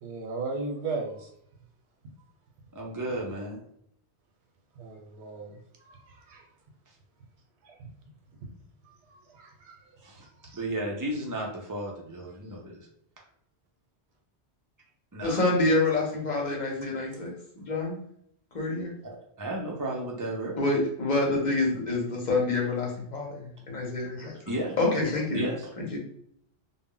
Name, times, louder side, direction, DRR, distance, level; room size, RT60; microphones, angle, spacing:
voice 1, 0.0-1.3 4.8-6.5 7.6-7.9 8.8-9.8 10.2-10.6 17.1-17.2, right 3 dB, 85° right, 0.9 m, -37 dB
voice 2, 2.7-3.6 10.0-10.2 10.5-12.8 15.1-15.4 19.4-20.5 24.5-24.8 25.3-25.7, right 1 dB, 25° right, 0.4 m, -33 dB
voice 3, 15.2-17.3 17.6-18.0 18.5-18.9 20.6-24.3 24.8-25.4 25.8-26.0, left 2 dB, 50° left, 0.8 m, -27 dB
2.0 x 2.0 x 3.7 m
omnidirectional pair, 1.1 m